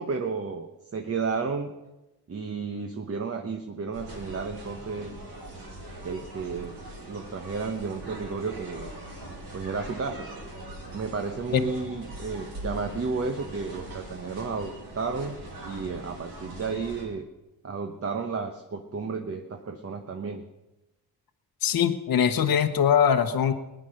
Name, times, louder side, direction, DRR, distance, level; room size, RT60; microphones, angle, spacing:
voice 1, 0.0-1.7 2.3-5.1 6.0-6.8 7.1-8.9 9.5-10.3 10.9-15.4 15.6-17.2 17.6-20.4, right 4 dB, 35° right, 5 dB, 1.0 m, -32 dB
sound 1, 3.9-17.0, right 1 dB, 75° right, 5.4 m, -41 dB
voice 2, 21.6-23.5, left 8 dB, 60° left, 6 dB, 1.0 m, -22 dB
20.0 x 10.0 x 6.4 m, 1.0 s
cardioid pair, 125°, 40 cm